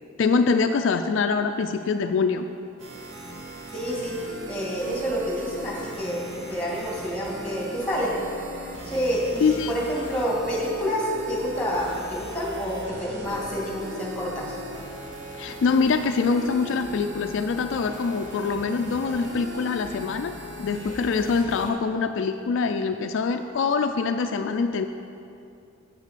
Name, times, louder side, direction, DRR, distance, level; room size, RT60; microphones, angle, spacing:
voice 1, 0.2-2.5 9.4-9.7 15.4-20.3 20.6-24.9, left 4 dB, 65° left, 7 dB, 0.3 m, -24 dB
sound 1, 2.8-21.7, equal, 60° right, 1.2 m, -39 dB
voice 2, 3.7-4.2 4.5-8.1 8.8-14.6, equal, 5° left, -4 dB, 2.0 m, -28 dB
7.5 x 6.2 x 6.7 m, 2.6 s
head